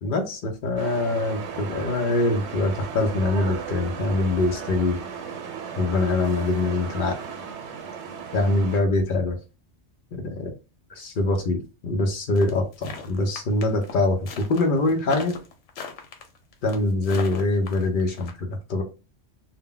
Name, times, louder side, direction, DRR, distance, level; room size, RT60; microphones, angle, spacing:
voice 1, 0.0-5.0 5.8-7.2 8.3-9.4 10.1-10.5 11.0-15.3 16.6-18.8, left 2 dB, 55° left, 0.6 m, -24 dB
sound 1, 0.8-8.8, right 6 dB, 75° right, 0.9 m, -35 dB
sound 2, 12.4-18.3, left 5 dB, 90° left, 0.9 m, -38 dB
2.1 x 2.1 x 3.6 m
omnidirectional pair, 1.2 m